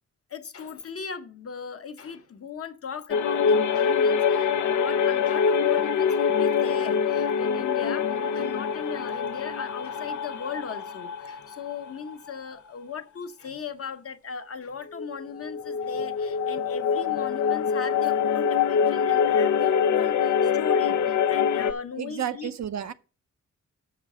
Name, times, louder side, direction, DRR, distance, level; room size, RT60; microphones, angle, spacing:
voice 1, 0.3-22.5, left 6 dB, 50° left, 0.9 m, -37 dB
sound 1, 3.1-12.3 12.6-12.7 14.9-21.7, left 7 dB, 75° left, 0.6 m, -24 dB
voice 2, 22.0-22.9, right 9 dB, 65° right, 0.6 m, -32 dB
6.4 x 5.9 x 7.2 m
wide cardioid pair, 125°, 30 cm